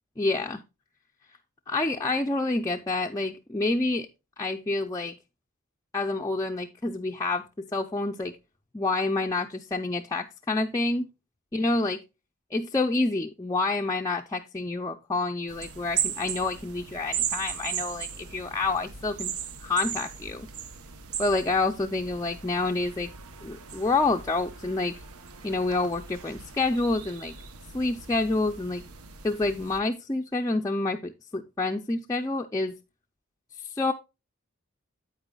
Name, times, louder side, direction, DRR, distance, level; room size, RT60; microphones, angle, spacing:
voice 1, 0.2-0.6 1.7-4.1 4.4-5.1 5.9-8.3 8.7-11.1 11.5-12.0 12.5-19.3 19.6-20.5 21.2-23.1 23.4-24.9 25.4-27.3 27.7-28.8 29.2-32.8 33.7-33.9, left 3 dB, 15° left, 0.4 m, -28 dB
sound 1, 15.5-29.8, right 8 dB, 90° right, 0.9 m, -37 dB
8.9 x 8.7 x 2.3 m
head